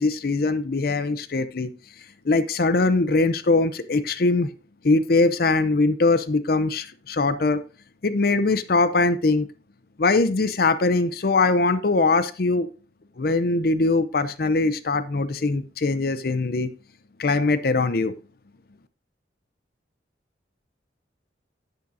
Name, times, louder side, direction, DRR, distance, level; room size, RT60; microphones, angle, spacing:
voice 1, 0.0-1.7 2.3-4.5 4.8-7.6 8.0-9.5 10.0-12.7 13.2-16.7 17.2-18.1, left 3 dB, 55° left, 12 dB, 0.6 m, -21 dB
10.5 x 8.5 x 2.7 m, 0.36 s
head